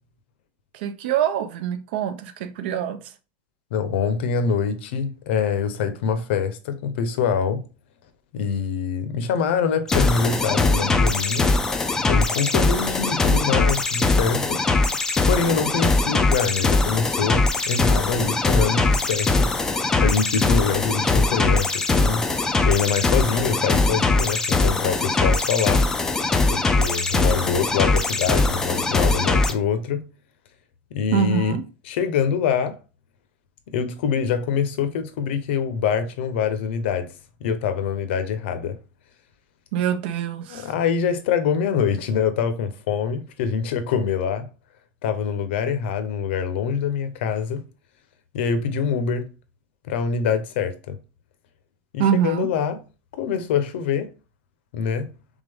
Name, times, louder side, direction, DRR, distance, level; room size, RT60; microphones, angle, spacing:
voice 1, 0.7-3.0 31.1-31.6 39.7-40.7 52.0-52.5, right 9 dB, 70° right, 0.6 m, -24 dB
voice 2, 3.7-7.6 8.3-11.5 12.0-14.7 15.3-19.5 20.0-25.9 26.5-30.1 30.9-31.6 31.9-32.7 33.7-37.1 37.4-38.8 40.5-44.5 45.0-47.6 48.3-49.3 49.9-51.0 51.9-52.8 53.1-54.1 54.7-55.1, left 6 dB, 80° left, 0.7 m, -24 dB
sound 1, 9.9-29.5, left 3 dB, 10° left, 0.3 m, -21 dB
3.6 x 3.6 x 3.5 m
supercardioid pair, 170°, 6 cm